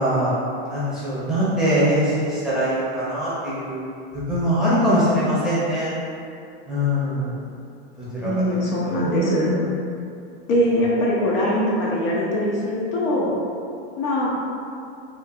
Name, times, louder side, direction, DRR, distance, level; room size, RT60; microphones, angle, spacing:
voice 1, 0.0-5.9 6.7-7.3 8.0-8.3 8.9-9.6, equal, ahead, -12 dB, 0.8 m, -23 dB
voice 2, 8.2-9.5 10.5-13.3 14.0-14.3, left 1 dB, 55° left, -5 dB, 0.5 m, -22 dB
2.4 x 2.2 x 2.6 m, 2.5 s
supercardioid pair, 130°, 31 cm